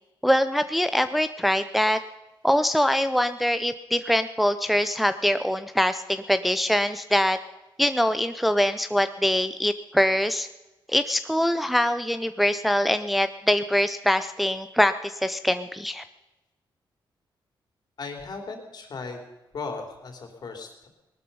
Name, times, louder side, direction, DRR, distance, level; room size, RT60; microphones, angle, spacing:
voice 1, 0.2-2.0 2.4-7.4 7.8-10.5 10.9-16.0, equal, ahead, 10 dB, 0.5 m, -23 dB
voice 2, 18.0-19.2 19.5-20.9, left 4 dB, 50° left, 4 dB, 3.1 m, -36 dB
19.0 x 12.5 x 5.5 m, 1.0 s
cardioid pair, 100°, 9 cm